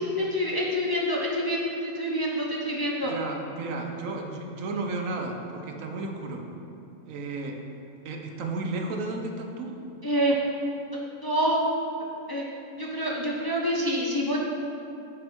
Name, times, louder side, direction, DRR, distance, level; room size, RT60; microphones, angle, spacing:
voice 1, 0.0-3.1 10.0-10.4 10.9-11.6 12.3-12.4 12.8-14.4, equal, 25° left, -3 dB, 0.6 m, -27 dB
voice 2, 3.0-6.4 7.0-7.6 8.0-9.7, right 3 dB, 85° right, 2 dB, 1.2 m, -33 dB
8.5 x 5.4 x 4.6 m, 2.8 s
omnidirectional pair, 1.3 m